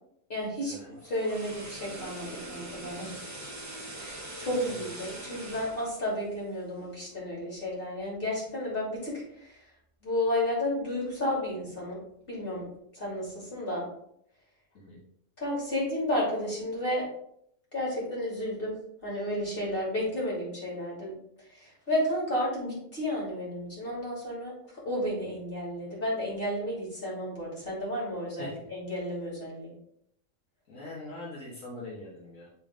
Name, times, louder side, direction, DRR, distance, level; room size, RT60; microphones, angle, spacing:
voice 1, 0.3-0.7 1.0-3.2 4.0-9.6 10.0-12.0 12.3-12.6 12.9-13.9 15.4-17.0 17.7-18.7 19.0-21.1 21.6-24.5 24.8-29.7, left 1 dB, 40° left, -6 dB, 3.0 m, -32 dB
sound 1, 0.8-7.0 7.4-7.6, right 1 dB, 15° right, 0.9 m, -43 dB
voice 2, 30.7-32.5, left 1 dB, 70° left, -5 dB, 1.6 m, -42 dB
7.6 x 3.5 x 3.7 m, 0.71 s
omnidirectional pair, 1.4 m